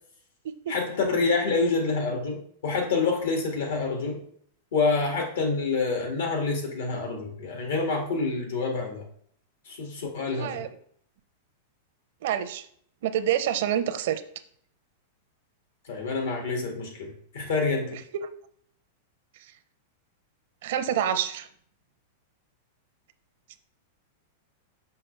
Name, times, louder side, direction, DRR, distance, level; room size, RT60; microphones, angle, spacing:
voice 1, 0.7-4.2 4.7-9.0 9.7-10.6 15.9-18.0, left 4 dB, 80° left, 2 dB, 1.9 m, -27 dB
voice 2, 10.3-10.7 12.2-12.7 13.0-14.2 18.1-18.3 20.6-21.5, right 10 dB, 65° right, 11 dB, 0.6 m, -27 dB
5.7 x 5.4 x 3.3 m, 0.63 s
supercardioid pair, 140°, 0 cm